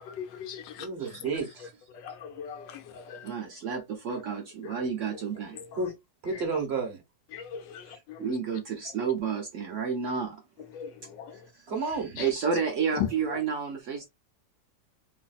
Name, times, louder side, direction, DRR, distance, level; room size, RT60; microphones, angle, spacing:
voice 1, 0.0-0.9 2.0-3.2 7.3-8.2 10.7-10.9 11.2-11.3 13.0-13.1, left 9 dB, 85° left, 1.4 m, -37 dB
voice 2, 0.8-1.7 5.7-5.9 6.2-7.0 11.7-12.1, right 4 dB, 40° right, 1.2 m, -31 dB
voice 3, 3.2-5.6 7.9-10.4 11.3-11.6 12.2-14.1, right 6 dB, 75° right, 0.7 m, -31 dB
3.2 x 2.5 x 2.3 m
omnidirectional pair, 1.9 m